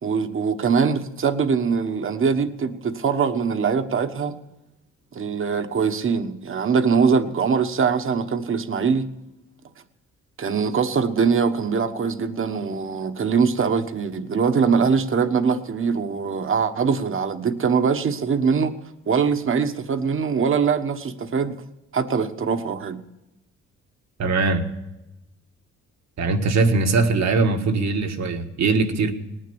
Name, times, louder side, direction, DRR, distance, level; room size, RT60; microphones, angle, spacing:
voice 1, 0.0-4.3 5.1-9.1 10.4-18.7 19.1-21.5 21.9-23.0, right 5 dB, 45° right, 1.3 m, -22 dB
voice 2, 24.2-24.6 26.2-29.1, right 3 dB, 60° right, 1.8 m, -21 dB
19.0 x 10.5 x 7.1 m
cardioid pair, 90°, 30 cm